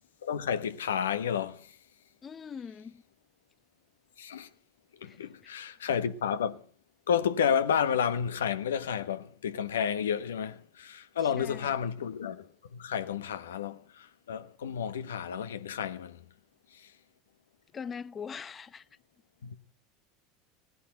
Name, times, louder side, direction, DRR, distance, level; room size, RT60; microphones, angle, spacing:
voice 1, 0.2-1.8 4.2-4.5 5.0-6.7 7.1-16.2 16.7-16.9 19.4-19.6, left 8 dB, 80° left, 1.2 m, -31 dB
voice 2, 2.2-3.0 5.0-5.5 11.2-11.8 17.7-18.9, left 6 dB, 30° left, 0.9 m, -42 dB
18.0 x 10.0 x 7.8 m
hypercardioid pair, 80°, 0 cm